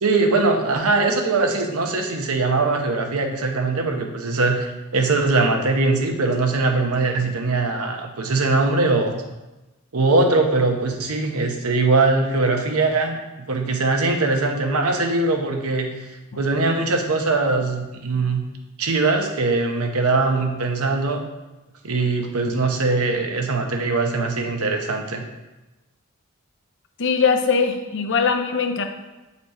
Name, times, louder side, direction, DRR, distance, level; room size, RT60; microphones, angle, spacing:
voice 1, 0.0-9.2 9.9-13.2 13.5-15.9 16.4-18.4 18.8-21.2 21.8-25.2, right 3 dB, 85° right, 3 dB, 1.0 m, -21 dB
voice 2, 27.0-28.8, left 5 dB, 60° left, 6 dB, 0.7 m, -21 dB
7.9 x 4.2 x 4.2 m, 1.1 s
head